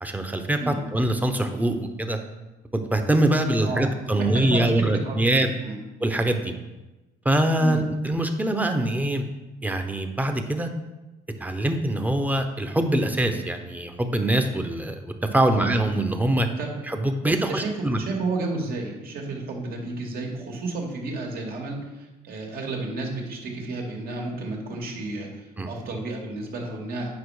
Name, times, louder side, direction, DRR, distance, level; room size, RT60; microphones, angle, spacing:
voice 1, 0.0-2.2 2.9-5.5 6.0-6.5 7.2-9.3 9.6-10.7 11.4-16.5 16.9-18.0 25.6-25.7, right 1 dB, 10° right, 6 dB, 0.9 m, -23 dB
voice 2, 4.2-5.2 5.6-5.8 7.6-7.8 15.5-15.7 16.6-16.8 17.2-27.2, right 2 dB, 60° right, 0 dB, 2.2 m, -32 dB
9.3 x 5.6 x 4.9 m, 1.1 s
cardioid pair, 110°, 17 cm